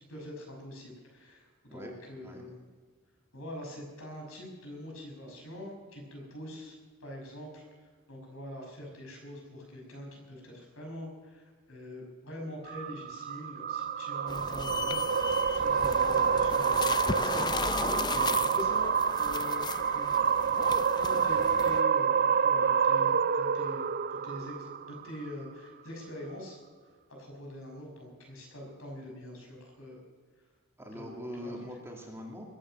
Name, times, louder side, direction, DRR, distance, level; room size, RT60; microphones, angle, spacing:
voice 1, 0.1-2.6 3.3-19.6 19.9-20.1 20.9-26.6 27.1-30.0 30.9-31.5, left 1 dB, 70° left, 0 dB, 6.0 m, -44 dB
sound 1, 12.7-25.2, right 7 dB, 45° right, 0.5 m, -28 dB
sound 2, 14.3-21.8, left 4 dB, 20° left, 0.4 m, -36 dB
voice 2, 30.8-32.4, equal, 10° right, -1 dB, 2.5 m, -42 dB
21.5 x 9.3 x 6.4 m, 1.5 s
head